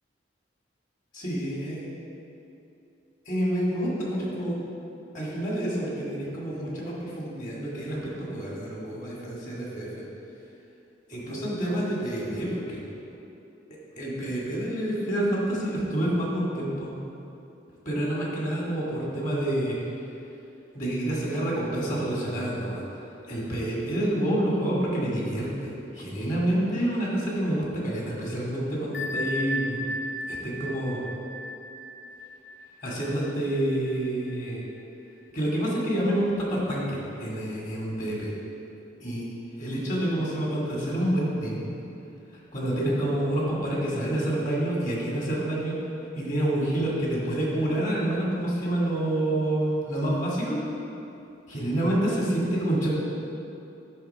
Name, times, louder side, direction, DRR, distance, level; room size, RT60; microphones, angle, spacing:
voice 1, 1.1-1.9 3.3-4.6 5.1-10.0 11.1-12.9 14.0-16.9 17.9-19.8 20.7-22.8 23.3-29.8 30.3-31.0 32.8-34.6 35.3-38.3 39.0-39.3 39.6-41.6 42.5-45.8 46.2-50.6 51.5-52.9, right 1 dB, 45° left, -5 dB, 2.0 m, -28 dB
Bell, 28.9-34.4, equal, 85° left, 0.7 m, -35 dB
10.5 x 3.6 x 6.6 m, 2.8 s
head